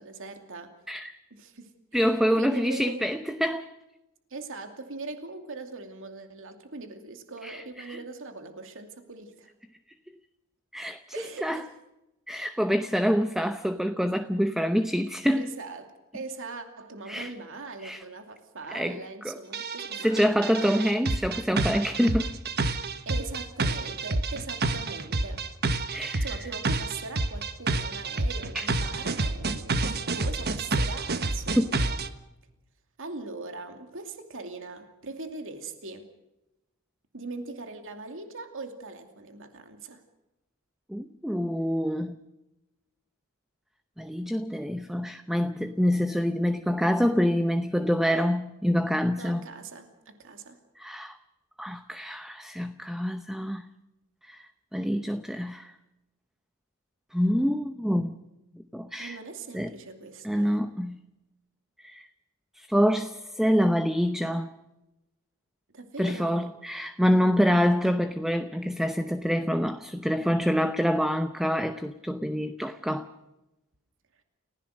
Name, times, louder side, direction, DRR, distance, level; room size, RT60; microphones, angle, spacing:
voice 1, 0.0-0.7 1.3-3.1 4.3-9.5 11.1-11.7 15.3-20.5 23.1-25.5 26.2-32.0 33.0-36.1 37.1-40.0 49.2-50.6 59.0-60.6 65.7-66.5, right 3 dB, 65° right, 6 dB, 2.6 m, -41 dB
voice 2, 0.9-1.2 1.9-3.7 7.4-8.0 10.7-11.6 12.3-15.5 17.1-17.3 17.8-18.0 18.7-19.0 19.2-19.4 20.0-22.3 25.9-26.3 28.5-28.7 31.6-31.7 40.9-42.2 44.0-49.5 50.8-51.2 51.6-53.7 54.3-54.4 54.7-55.7 57.1-58.2 58.7-59.2 59.5-59.7 60.2-61.0 61.8-62.1 62.5-64.5 66.0-73.1, equal, ahead, 9 dB, 0.8 m, -26 dB
sound 1, 19.5-32.1, right 3 dB, 50° right, 1.3 m, -29 dB
30.0 x 16.5 x 6.5 m, 0.96 s
head